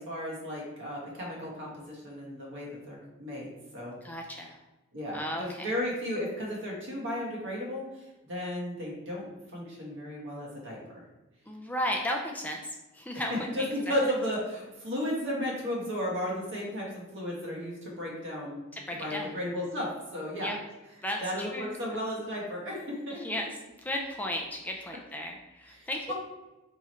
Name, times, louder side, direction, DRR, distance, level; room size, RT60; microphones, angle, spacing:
voice 1, 0.0-4.0 4.9-10.8 13.5-18.6 19.0-20.5 21.2-23.2 25.8-26.1, equal, 60° right, -3 dB, 1.4 m, -34 dB
voice 2, 4.0-4.6 5.1-5.7 11.5-13.5 18.7-19.3 20.4-20.6 21.0-21.8 23.2-23.5 23.8-26.1, equal, 10° left, 1 dB, 0.4 m, -34 dB
3.6 x 3.1 x 4.3 m, 1.1 s
head